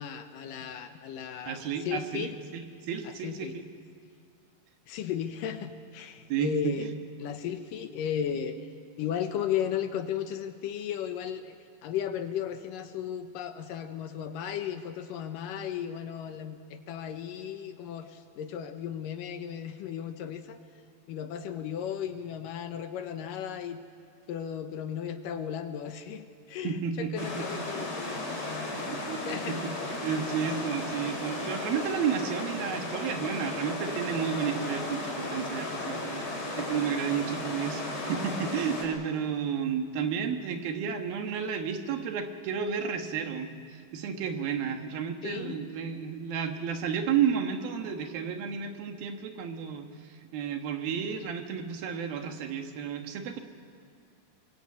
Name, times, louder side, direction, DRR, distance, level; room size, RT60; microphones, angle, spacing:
voice 1, 0.0-2.4 3.0-3.6 4.9-6.9 7.2-8.7 9.0-11.6 11.8-20.6 21.1-23.8 24.3-29.6 45.2-45.6, left 9 dB, 70° left, 8 dB, 2.5 m, -35 dB
voice 2, 1.5-3.7 6.3-6.9 26.6-27.5 27.8-27.9 28.7-53.4, right 7 dB, 75° right, 5 dB, 3.2 m, -32 dB
sound 1, 27.2-38.8, left 2 dB, 25° left, 5.4 m, -35 dB
23.5 x 21.5 x 8.5 m, 2.2 s
omnidirectional pair, 4.3 m